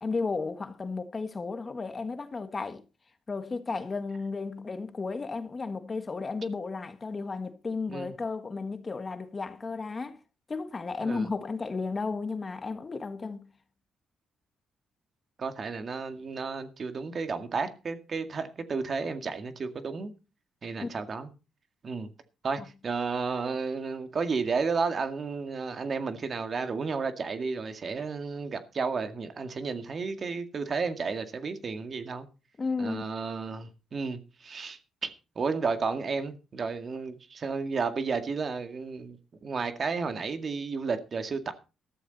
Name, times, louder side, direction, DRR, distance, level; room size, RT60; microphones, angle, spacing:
voice 1, 0.0-2.8 3.3-10.2 10.5-13.5 20.8-20.9 32.6-33.0, left 4 dB, 30° left, 1.5 m, -33 dB
voice 2, 15.4-20.1 20.6-21.3 21.8-22.1 22.4-32.3 32.8-41.5, right 4 dB, 45° right, 2.0 m, -32 dB
14.0 x 13.5 x 4.2 m
cardioid pair, 90°, 0 cm